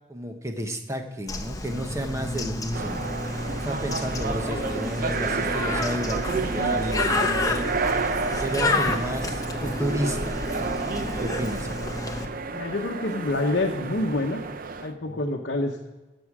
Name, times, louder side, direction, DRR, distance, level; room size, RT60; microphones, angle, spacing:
voice 1, 0.1-3.0 3.6-10.4 11.1-11.7 15.1-15.2, right 1 dB, 15° right, 5 dB, 1.0 m, -32 dB
Bird, 1.3-12.3, left 2 dB, 20° left, 0.8 m, -30 dB
sound 1, 2.7-14.9, right 4 dB, 50° right, 0.6 m, -30 dB
voice 2, 12.5-14.4 14.8-15.8, left 2 dB, 60° left, -1 dB, 1.0 m, -27 dB
15.5 x 6.3 x 4.9 m, 1.1 s
head